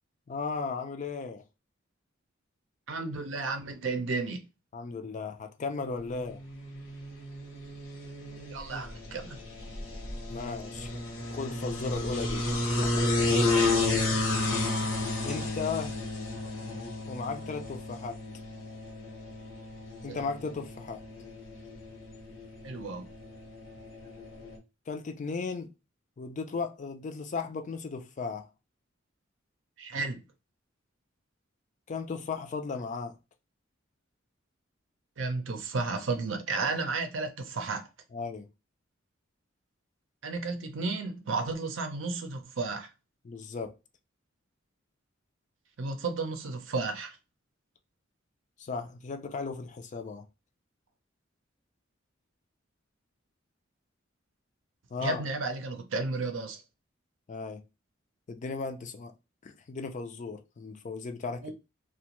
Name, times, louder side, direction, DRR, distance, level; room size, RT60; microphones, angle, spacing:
voice 1, 0.3-1.4 4.7-6.4 10.3-10.9 11.3-12.5 12.8-13.0 15.2-16.0 17.1-18.2 20.0-21.0 24.9-25.7 26.2-28.5 31.9-33.2 38.1-38.5 43.2-43.7 48.6-50.3 54.9-55.2 57.3-57.6 58.3-59.1 59.4-61.5, left 4 dB, 40° left, 0.4 m, -36 dB
voice 2, 2.9-4.4 8.5-9.4 14.8-14.9 20.1-20.2 22.6-23.0 29.8-30.2 35.2-37.9 40.2-42.9 45.8-47.2 55.0-56.6 61.4-61.5, right 3 dB, 70° right, 0.6 m, -33 dB
sound 1, 6.5-24.6, left 2 dB, 75° left, 0.9 m, -32 dB
2.5 x 2.2 x 2.9 m
head